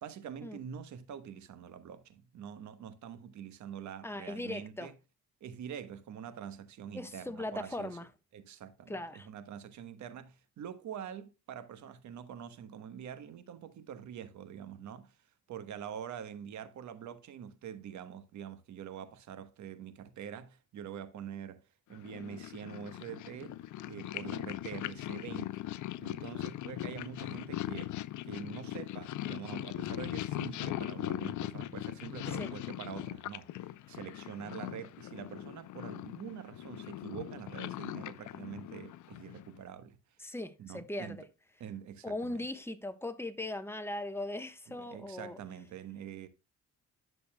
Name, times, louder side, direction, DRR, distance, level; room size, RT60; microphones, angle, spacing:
voice 1, 0.0-4.9 5.4-8.0 8.3-15.2 15.5-21.6 21.9-23.6 23.9-25.6 26.0-28.0 28.2-40.0 40.6-41.3 41.6-42.4 44.7-46.3, right 8 dB, 70° right, 1.2 m, -45 dB
voice 2, 4.0-4.9 6.9-8.1 8.9-9.3 32.3-32.5 40.2-41.3 42.0-45.4, left 1 dB, 10° left, 1.1 m, -39 dB
Purr, 21.9-39.6, left 14 dB, 75° left, 0.6 m, -40 dB
11.0 x 6.7 x 2.2 m
cardioid pair, 90°, 30 cm